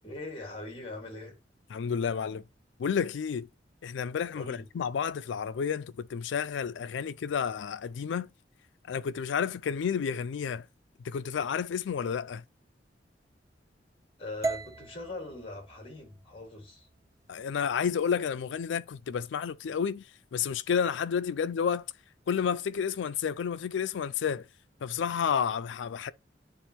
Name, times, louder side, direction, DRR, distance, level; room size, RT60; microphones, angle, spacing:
voice 1, 0.0-1.4 4.4-4.7 14.2-16.9, left 2 dB, 30° left, 2.0 m, -41 dB
voice 2, 1.7-2.4 2.8-3.5 3.8-8.3 8.9-10.7 11.0-12.4 17.3-20.0 20.3-21.9 22.3-24.5 24.8-26.1, left 7 dB, 80° left, 0.4 m, -30 dB
sound 1, 14.4-18.6, right 3 dB, 20° right, 0.3 m, -40 dB
9.9 x 3.5 x 3.0 m
head